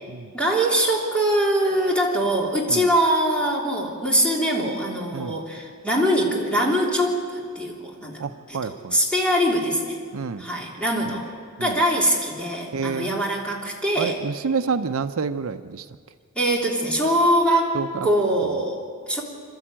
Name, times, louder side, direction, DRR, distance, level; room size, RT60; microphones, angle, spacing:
voice 1, 0.3-8.2 8.5-10.0 10.4-11.3 11.6-14.2 16.3-19.2, right 1 dB, 5° left, -2 dB, 3.2 m, -23 dB
voice 2, 8.2-9.0 10.1-10.5 11.1-11.2 11.6-11.8 12.7-13.1 14.0-15.9 17.7-18.1 18.4-18.7, right 5 dB, 75° right, 10 dB, 0.6 m, -28 dB
27.5 x 12.5 x 8.8 m, 2.1 s
head